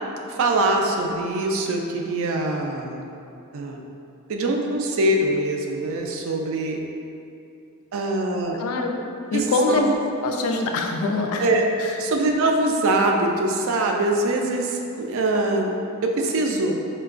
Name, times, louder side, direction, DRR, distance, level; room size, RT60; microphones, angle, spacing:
voice 1, 0.3-3.0 3.5-3.8 4.3-6.8 7.9-8.6 9.3-10.0 11.4-11.7 12.0-15.7 16.2-16.8, right 2 dB, 65° right, 2 dB, 0.4 m, -23 dB
voice 2, 8.6-9.0 9.3-9.8 10.2-11.5 11.8-12.0, left 3 dB, 70° left, 3 dB, 0.3 m, -24 dB
4.5 x 2.2 x 2.4 m, 2.6 s
head